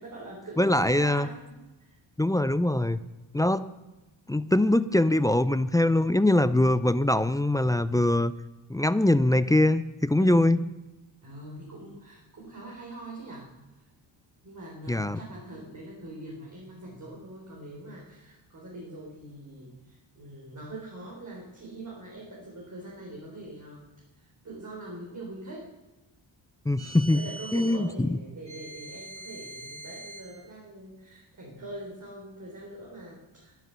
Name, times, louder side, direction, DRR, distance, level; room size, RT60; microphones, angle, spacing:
voice 1, 0.0-2.0 10.2-10.4 11.2-13.5 14.4-23.9 24.2-25.7 27.1-33.6, right 1 dB, 40° right, -4 dB, 3.9 m, -43 dB
voice 2, 0.6-1.3 2.2-3.0 3.3-3.7 4.3-8.3 8.7-10.6 14.9-15.2 26.7-28.2, left 1 dB, 10° left, 14 dB, 0.4 m, -23 dB
sound 1, 26.8-27.8 28.5-30.3, right 1 dB, 10° right, 3.8 m, -43 dB
12.5 x 10.5 x 6.7 m, 1.1 s
cardioid pair, 105°, 47 cm